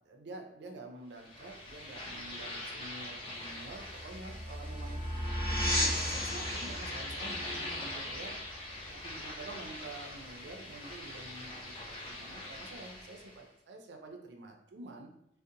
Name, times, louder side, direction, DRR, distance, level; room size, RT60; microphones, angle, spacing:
voice 1, 0.1-5.0 5.6-8.3 8.8-15.1, right 2 dB, 70° right, 3 dB, 0.4 m, -48 dB
sound 1, 1.2-13.4, left 1 dB, 30° left, 0.6 m, -43 dB
sound 2, 3.7-9.1, equal, 5° right, 0.7 m, -35 dB
2.7 x 2.1 x 2.5 m, 0.78 s
head